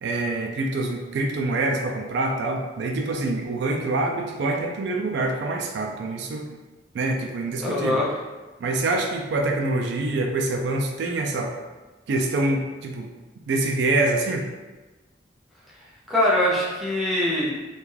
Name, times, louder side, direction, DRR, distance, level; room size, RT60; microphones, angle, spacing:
voice 1, 0.0-6.5 6.9-8.0 8.6-11.5 12.1-13.1 13.5-14.4, right 2 dB, 65° right, 2 dB, 0.3 m, -25 dB
voice 2, 7.6-8.2 16.1-17.5, left 1 dB, ahead, -7 dB, 0.5 m, -22 dB
2.4 x 2.3 x 3.1 m, 1.2 s
head